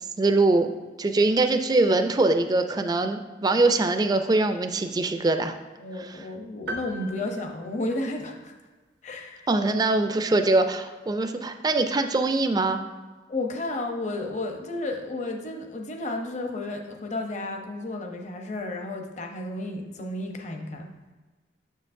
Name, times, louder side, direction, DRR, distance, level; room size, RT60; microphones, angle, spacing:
voice 1, 0.2-0.7 1.0-5.6 6.0-6.2 9.5-12.8, right 2 dB, 20° right, 7 dB, 0.4 m, -23 dB
voice 2, 5.8-8.5 9.0-9.5 13.3-20.9, left 2 dB, 40° left, 3 dB, 0.7 m, -32 dB
sound 1, 6.7-8.5, right 1 dB, 70° right, 0.6 m, -39 dB
6.7 x 6.4 x 2.6 m, 1.3 s
head